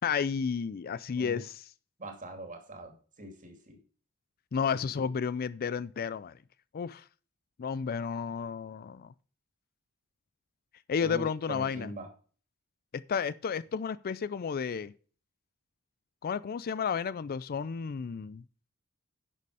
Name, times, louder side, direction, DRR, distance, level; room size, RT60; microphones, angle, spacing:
voice 1, 0.0-1.6 4.5-6.3 6.7-7.0 7.6-9.1 10.9-11.9 12.9-14.9 16.2-18.4, left 6 dB, 45° left, 0.4 m, -32 dB
voice 2, 2.0-3.8 4.7-5.1 11.0-12.1, right 1 dB, 35° right, 2.6 m, -43 dB
11.0 x 6.7 x 4.8 m
head